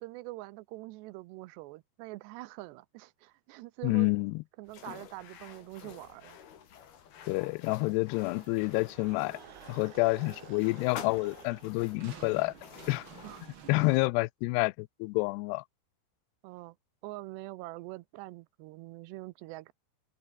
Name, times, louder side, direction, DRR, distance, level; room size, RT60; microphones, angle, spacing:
voice 1, 0.0-4.2 4.6-6.4 13.2-13.5 13.7-13.8 14.5-14.7 16.4-16.8 17.0-19.7, right 20 dB, 90° right, 2.9 m, -44 dB
voice 2, 3.8-4.4 7.3-9.4 9.7-12.5 12.9-13.1 13.7-15.6, left 25 dB, 85° left, 2.6 m, -28 dB
sound 1, 4.7-13.5, left 8 dB, 70° left, 4.8 m, -49 dB
sound 2, 7.5-11.7, right 12 dB, 65° right, 2.1 m, -54 dB
sound 3, 8.2-14.1, right 7 dB, 45° right, 1.7 m, -53 dB
open air
omnidirectional pair, 4.8 m